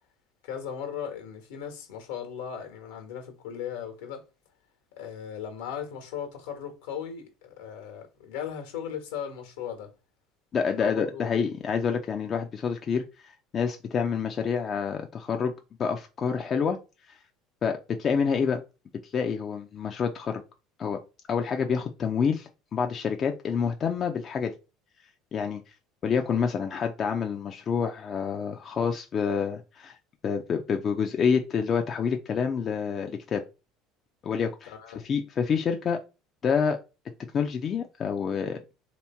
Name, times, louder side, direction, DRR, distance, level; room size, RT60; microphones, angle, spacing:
voice 1, 0.4-4.2 4.9-9.9 10.7-11.4 34.7-35.0, left 8 dB, 75° left, 1.3 m, -37 dB
voice 2, 10.5-15.5 15.8-16.8 17.1-17.2 17.6-18.6 19.0-20.4 20.8-21.0 21.3-24.5 25.3-25.6 26.0-30.0 30.2-33.4 34.2-36.0 36.4-36.8 37.3-38.6, left 6 dB, 40° left, 0.6 m, -28 dB
3.4 x 3.0 x 4.4 m
hypercardioid pair, 70°, 0 cm